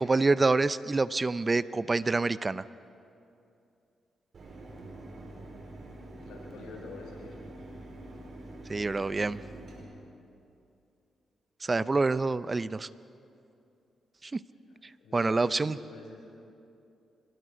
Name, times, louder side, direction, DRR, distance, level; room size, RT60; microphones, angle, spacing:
voice 1, 0.0-2.6 8.7-9.4 11.6-12.9 14.2-14.4 15.1-15.8, right 3 dB, 30° right, 16 dB, 0.5 m, -27 dB
Mechanisms, 4.3-9.8, right 1 dB, 55° right, 5.8 m, -45 dB
voice 2, 6.2-7.4 15.0-16.5, left 3 dB, 85° left, -2 dB, 5.6 m, -47 dB
26.5 x 20.0 x 5.1 m, 2.6 s
cardioid pair, 75°, 0 cm